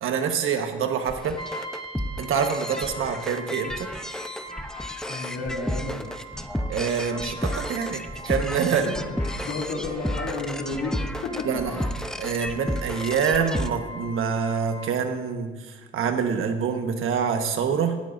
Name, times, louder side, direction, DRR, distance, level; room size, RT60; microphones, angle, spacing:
voice 1, 0.0-1.4 2.2-3.9 6.7-8.8 11.5-11.7 12.2-15.5 15.9-18.0, right 6 dB, 80° right, 6 dB, 1.3 m, -26 dB
sound 1, 1.1-13.7, equal, 5° left, 0.7 m, -32 dB
Brass instrument, 1.4-15.0, left 1 dB, 25° left, 1.8 m, -42 dB
voice 2, 5.1-6.5 8.7-11.9, left 3 dB, 85° left, -2 dB, 2.9 m, -33 dB
17.0 x 13.0 x 2.6 m, 1.3 s
cardioid pair, 110°, 21 cm